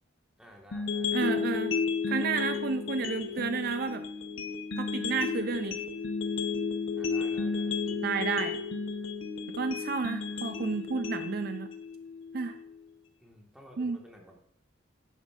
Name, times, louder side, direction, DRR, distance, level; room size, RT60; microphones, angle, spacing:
voice 1, 0.4-1.3 2.1-2.3 3.1-3.5 7.0-8.5 10.8-10.9 13.2-14.4, equal, 5° right, -1 dB, 1.5 m, -54 dB
sound 1, 0.7-12.7, left 5 dB, 80° left, 0.8 m, -33 dB
voice 2, 1.1-1.8 2.1-4.0 4.8-5.7 8.0-8.5 9.5-11.7 12.3-12.6 13.8-14.0, right 5 dB, 50° right, 9 dB, 0.4 m, -31 dB
10.0 x 9.0 x 2.5 m, 0.72 s
head